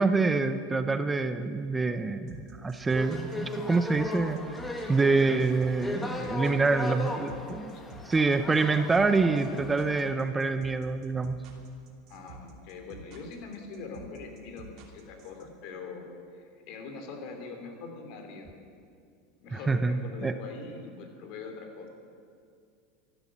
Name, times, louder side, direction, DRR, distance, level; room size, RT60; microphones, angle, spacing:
voice 1, 0.0-4.4 4.9-7.7 8.1-11.4 19.5-20.3, right 3 dB, 15° right, 10 dB, 0.7 m, -26 dB
sound 1, 2.3-15.4, right 5 dB, 55° right, 2.8 m, -49 dB
sound 2, 2.9-10.1, left 1 dB, 15° left, 1.9 m, -37 dB
voice 2, 6.1-7.3 7.6-7.9 12.1-18.6 19.4-21.9, left 4 dB, 60° left, 4 dB, 2.9 m, -43 dB
13.5 x 11.0 x 7.4 m, 2.3 s
hypercardioid pair, 100°, 0 cm